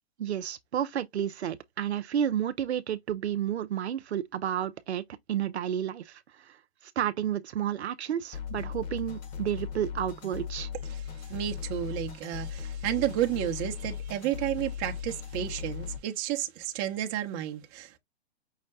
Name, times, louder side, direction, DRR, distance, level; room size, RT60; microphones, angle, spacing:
voice 1, 0.2-6.6 7.0-10.7, right 10 dB, 80° right, 0.6 m, -31 dB
sound 1, 8.3-16.0, left 8 dB, 35° left, 1.4 m, -38 dB
voice 2, 10.9-18.0, right 12 dB, 30° right, 0.7 m, -32 dB
5.6 x 2.1 x 3.6 m
hypercardioid pair, 130°, 33 cm